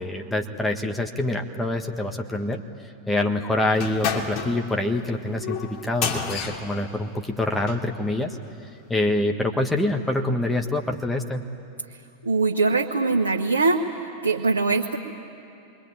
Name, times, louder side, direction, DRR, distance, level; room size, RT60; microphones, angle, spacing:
voice 1, 0.0-2.6 3.1-8.4 8.9-11.4, left 1 dB, 10° left, 3 dB, 1.5 m, -25 dB
sound 1, 3.7-7.9, left 6 dB, 40° left, 2.9 m, -31 dB
voice 2, 12.2-13.8 14.2-15.0, right 3 dB, 75° right, 0 dB, 1.4 m, -22 dB
27.5 x 22.0 x 9.6 m, 2.7 s
figure-of-eight pair, 90°, 0 cm